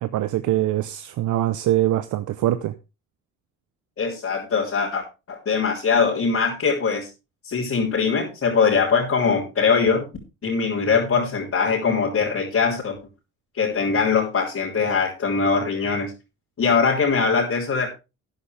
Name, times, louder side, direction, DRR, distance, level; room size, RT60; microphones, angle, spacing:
voice 1, 0.0-2.7, right 13 dB, 75° right, 0.8 m, -23 dB
voice 2, 4.0-7.1 7.4-10.1 10.4-13.0 13.5-16.1 16.6-17.9, left 5 dB, 50° left, 3.4 m, -22 dB
12.5 x 10.0 x 3.4 m
cardioid pair, 90°, 30 cm